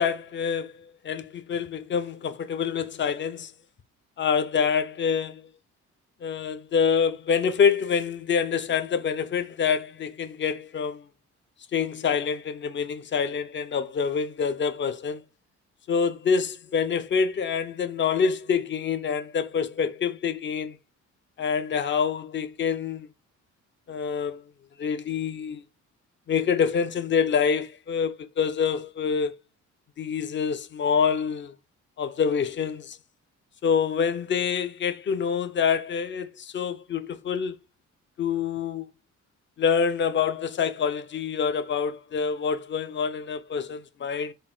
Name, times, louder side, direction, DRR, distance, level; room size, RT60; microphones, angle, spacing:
voice 1, 0.0-3.5 4.2-5.5 6.2-11.0 11.7-15.2 15.9-20.8 21.4-23.1 23.9-24.4 24.8-25.6 26.3-29.3 30.0-31.5 32.0-33.0 33.6-37.6 38.2-38.9 39.6-44.3, left 6 dB, 40° left, 0.5 m, -26 dB
4.0 x 2.3 x 3.8 m
cardioid pair, 90°, 30 cm